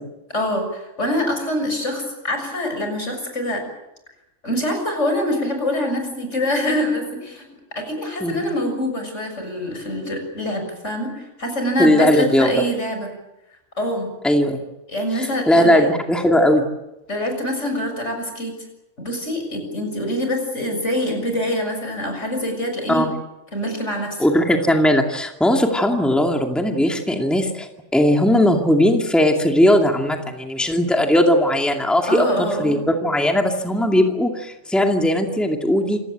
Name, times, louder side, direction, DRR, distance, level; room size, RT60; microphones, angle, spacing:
voice 1, 0.3-3.6 4.4-7.5 7.8-13.1 13.8-14.1 14.9-15.9 17.1-18.6 19.0-23.1 23.5-24.3 32.1-32.8, left 1 dB, 75° left, 4 dB, 7.2 m, -25 dB
voice 2, 11.8-12.5 14.2-14.6 15.2-16.7 22.9-23.1 24.2-36.0, left 1 dB, ahead, 2 dB, 2.4 m, -18 dB
27.5 x 17.5 x 8.8 m, 0.94 s
omnidirectional pair, 1.2 m